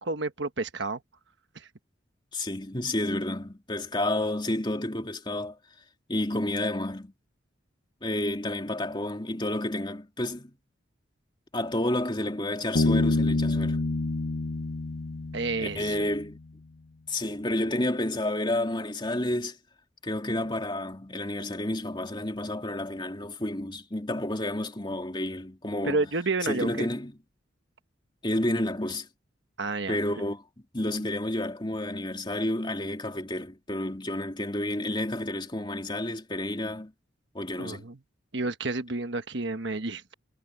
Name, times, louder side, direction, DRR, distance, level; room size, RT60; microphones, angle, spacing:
voice 1, 0.0-1.0 1.5-1.7 15.3-15.9 25.8-26.9 29.6-30.0 37.6-38.0 38.3-40.1, right 3 dB, 60° right, 1.3 m, -30 dB
voice 2, 2.3-5.6 6.1-7.1 8.0-10.5 11.5-13.8 15.6-16.4 17.1-19.6 20.0-26.1 26.4-27.2 28.2-29.1 29.9-30.4 30.7-36.9 37.3-37.8, left 1 dB, 25° left, 2.9 m, -30 dB
Bass guitar, 12.8-16.3, left 2 dB, 75° left, 0.8 m, -27 dB
head